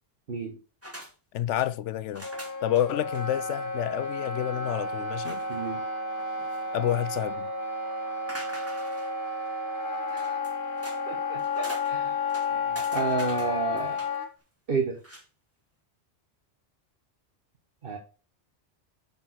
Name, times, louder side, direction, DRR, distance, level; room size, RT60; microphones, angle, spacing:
sound 1, 0.8-1.1 1.4-1.7 2.1-2.8 3.1-3.3 3.6-3.7 4.0-4.3 5.2-5.7 6.2-6.9 8.3-9.2 10.1-11.0 11.3-11.9 12.3-14.2 14.9-15.2, equal, 10° right, 2.0 m, -42 dB
voice 1, 1.3-2.3 2.6-5.4 6.7-7.5, left 12 dB, 85° left, 0.9 m, -29 dB
Wind instrument woodwind instrument, 2.2-14.3, left 3 dB, 45° left, 1.5 m, -32 dB
voice 2, 5.5-5.8 10.1-10.3 11.1-14.0 14.7-15.0 17.8-18.0, right 5 dB, 55° right, 1.3 m, -32 dB
10.5 x 4.3 x 4.2 m
omnidirectional pair, 1.2 m